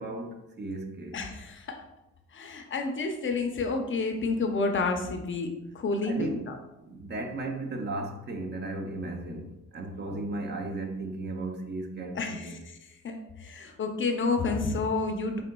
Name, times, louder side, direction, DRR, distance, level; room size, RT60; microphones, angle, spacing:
voice 1, 0.0-1.2 6.0-6.5 6.9-12.6, right 2 dB, 35° right, 0.7 m, -35 dB
voice 2, 1.1-1.8 2.3-6.6 10.1-10.2 12.1-15.4, left 3 dB, 40° left, 0.6 m, -30 dB
5.0 x 3.6 x 2.2 m
cardioid pair, 90°, 30 cm